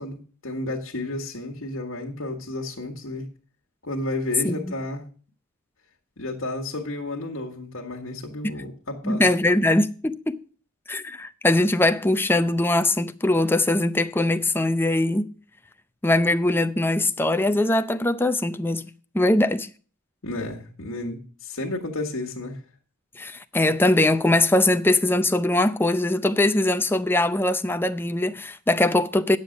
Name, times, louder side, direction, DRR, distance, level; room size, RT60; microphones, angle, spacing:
voice 1, 0.0-3.3 3.8-5.1 6.2-9.2 20.2-22.6, left 2 dB, 75° left, 1.6 m, -32 dB
voice 2, 9.0-10.4 10.9-15.3 16.0-18.8 19.1-19.7 23.2-29.4, left 1 dB, 10° left, 0.5 m, -21 dB
9.7 x 7.1 x 6.4 m
head